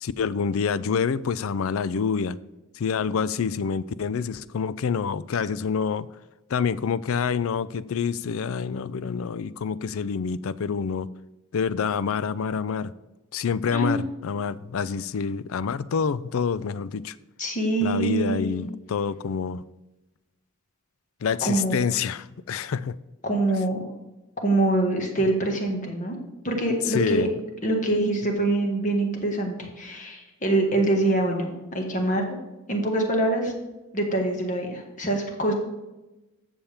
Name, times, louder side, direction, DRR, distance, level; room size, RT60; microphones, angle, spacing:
voice 1, 0.0-2.4 2.8-6.1 6.5-11.1 11.5-12.9 13.3-17.1 17.8-19.6 21.2-22.9 26.9-27.3, left 6 dB, 70° left, 0.4 m, -27 dB
voice 2, 13.7-14.0 17.4-18.5 21.4-21.8 23.2-23.8 24.4-26.1 26.4-27.3 27.6-32.2 32.7-33.5 33.9-35.5, right 2 dB, 35° left, 1.6 m, -24 dB
12.5 x 7.1 x 3.4 m
head